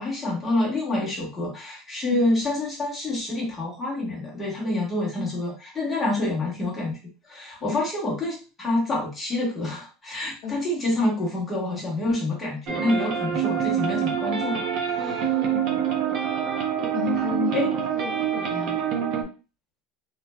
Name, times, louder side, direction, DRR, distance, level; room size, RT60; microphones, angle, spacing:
voice 1, 0.0-7.0 7.2-15.5 17.5-17.7, left 2 dB, 10° left, -4 dB, 1.1 m, -27 dB
sound 1, 12.7-19.2, right 9 dB, 45° right, 0.7 m, -26 dB
voice 2, 15.4-15.8 16.8-18.8 19.1-19.2, left 7 dB, 50° left, -2 dB, 0.6 m, -33 dB
3.1 x 2.5 x 2.2 m, 0.33 s
cardioid pair, 170°, 0 cm